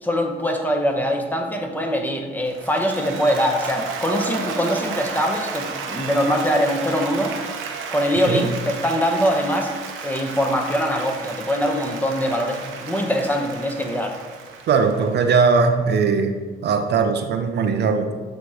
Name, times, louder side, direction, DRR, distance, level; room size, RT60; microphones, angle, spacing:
voice 1, 0.0-7.3 7.9-9.7 10.0-14.2, equal, 10° left, 2 dB, 1.0 m, -23 dB
Applause, 2.5-15.7, right 5 dB, 90° right, 0.8 m, -33 dB
voice 2, 14.7-16.4 16.6-18.1, right 5 dB, 60° right, 7 dB, 0.6 m, -19 dB
8.1 x 3.1 x 4.8 m, 1.5 s
cardioid pair, 90°, 20 cm